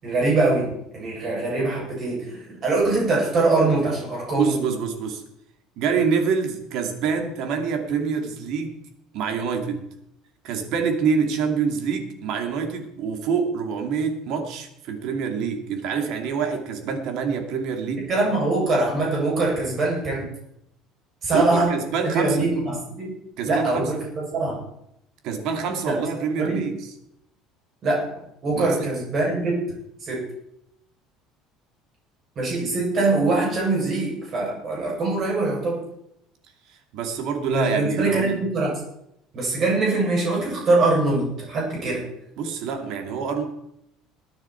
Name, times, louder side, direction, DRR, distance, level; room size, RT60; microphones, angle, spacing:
voice 1, 0.0-4.6 18.1-20.3 21.2-21.7 22.0-23.1 23.5-24.6 26.4-26.7 27.8-28.1 28.4-29.6 30.0-30.2 32.4-35.8 37.5-38.7 39.3-42.0, right 2 dB, 30° right, -3 dB, 7.5 m, -23 dB
voice 2, 4.3-5.2 5.8-8.8 9.1-9.9 10.4-18.1 21.3-22.5 23.4-24.0 25.2-26.9 28.5-28.9 36.7-38.4 42.4-43.4, right 6 dB, 50° right, 4 dB, 2.4 m, -26 dB
21.0 x 9.6 x 4.5 m, 0.78 s
cardioid pair, 175°, 0 cm